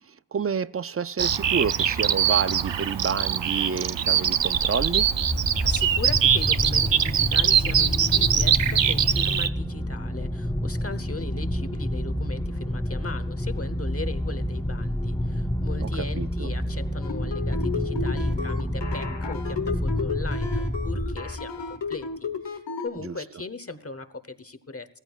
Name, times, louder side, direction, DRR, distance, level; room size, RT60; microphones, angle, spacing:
voice 1, 0.3-5.1 15.8-16.5 23.0-23.1, right 6 dB, 35° right, 17 dB, 0.4 m, -29 dB
Bird vocalization bird call bird song, 1.2-9.5, right 9 dB, 85° right, 0.6 m, -23 dB
sound 1, 4.3-21.6, left 1 dB, 10° left, 0.7 m, -29 dB
voice 2, 5.6-25.0, left 3 dB, 35° left, 12 dB, 1.0 m, -38 dB
sound 2, 17.0-22.9, left 4 dB, 85° left, 1.2 m, -32 dB
16.0 x 14.0 x 2.4 m, 0.78 s
wide cardioid pair, 45°, 42 cm